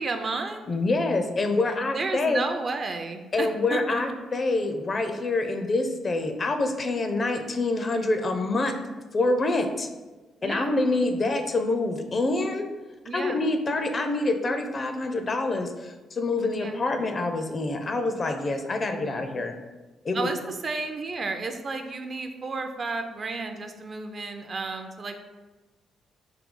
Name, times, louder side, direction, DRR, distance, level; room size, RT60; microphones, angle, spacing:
voice 1, 0.0-0.6 1.9-4.1 10.4-10.7 13.1-13.4 16.6-16.8 19.0-19.3 20.1-25.1, right 3 dB, 40° right, 6 dB, 0.4 m, -32 dB
voice 2, 0.7-2.4 3.3-8.7 9.1-9.9 10.4-12.7 13.1-19.6 20.0-20.3, left 2 dB, 35° left, 6 dB, 0.4 m, -26 dB
3.8 x 2.7 x 3.7 m, 1.2 s
cardioid pair, 90°, 0 cm